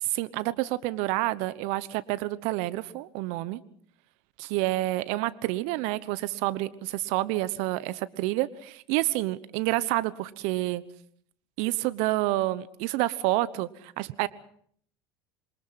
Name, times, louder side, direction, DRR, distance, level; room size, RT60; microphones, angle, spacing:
voice 1, 0.0-3.6 4.4-10.8 11.6-14.3, right 17 dB, 65° right, 16 dB, 1.0 m, -28 dB
27.5 x 23.5 x 5.9 m, 0.62 s
hypercardioid pair, 75°, 12 cm